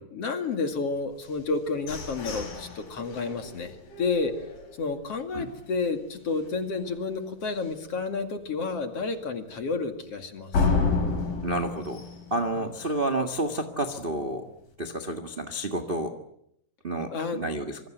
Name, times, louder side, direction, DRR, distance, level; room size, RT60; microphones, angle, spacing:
voice 1, 0.1-4.3 4.8-10.7 17.1-17.4, left 4 dB, 45° left, 6 dB, 3.0 m, -30 dB
sound 1, 1.2-5.1 5.6-5.7 6.1-6.5 6.8-6.9 7.4-7.5 10.5-13.2, left 4 dB, 70° left, 6.7 m, -31 dB
voice 2, 11.4-12.0 12.3-14.5 14.8-16.1 16.8-17.8, right 1 dB, 40° right, 6 dB, 0.7 m, -30 dB
26.5 x 23.5 x 8.1 m, 0.74 s
omnidirectional pair, 4.2 m